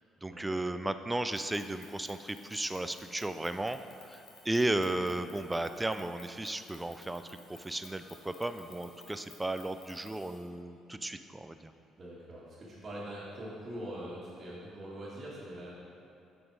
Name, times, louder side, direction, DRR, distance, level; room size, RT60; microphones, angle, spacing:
voice 1, 0.2-3.8 4.1-11.7, right 1 dB, 10° right, 10 dB, 0.4 m, -34 dB
sound 1, 1.3-10.5, left 3 dB, 60° left, 1.5 m, -56 dB
voice 2, 12.0-15.7, right 1 dB, 35° right, -10 dB, 1.8 m, -43 dB
8.0 x 5.4 x 4.7 m, 2.6 s
cardioid pair, 90°, 0 cm